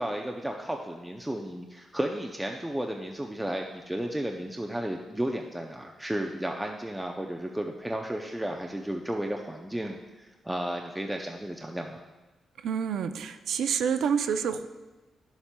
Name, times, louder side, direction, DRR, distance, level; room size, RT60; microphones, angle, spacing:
voice 1, 0.0-12.0, right 1 dB, 5° right, 2 dB, 0.5 m, -33 dB
voice 2, 12.6-14.7, right 7 dB, 85° right, 9 dB, 0.4 m, -28 dB
12.0 x 7.1 x 2.2 m, 1.1 s
cardioid pair, 125°, 0 cm